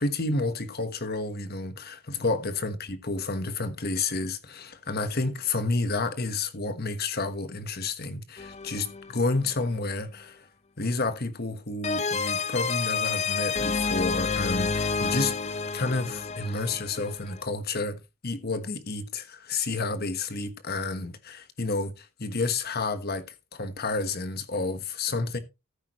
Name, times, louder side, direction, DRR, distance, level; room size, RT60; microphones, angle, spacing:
voice 1, 0.0-10.5 10.8-15.3 15.7-23.2 23.5-25.4, left 3 dB, 45° left, 1.3 m, -30 dB
sound 1, 8.4-9.4 11.8-17.4, left 4 dB, 30° left, 0.6 m, -29 dB
14.5 x 8.6 x 3.1 m
head